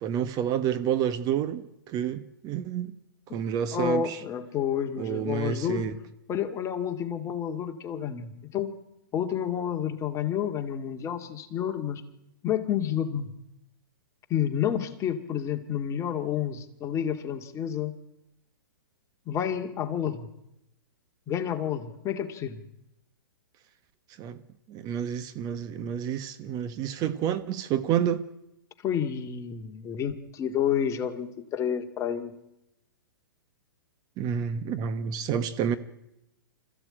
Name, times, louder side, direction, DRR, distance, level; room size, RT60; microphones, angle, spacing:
voice 1, 0.0-3.0 3.3-4.2 5.0-5.9 24.2-24.4 24.7-28.2 34.2-35.8, right 9 dB, 30° right, 1.2 m, -29 dB
voice 2, 3.7-5.8 6.3-8.7 9.1-12.0 12.4-13.3 14.3-17.9 19.3-20.3 21.3-22.6 28.8-32.3, left 9 dB, 25° left, 2.1 m, -30 dB
25.5 x 15.0 x 8.9 m
hypercardioid pair, 125°, 13 cm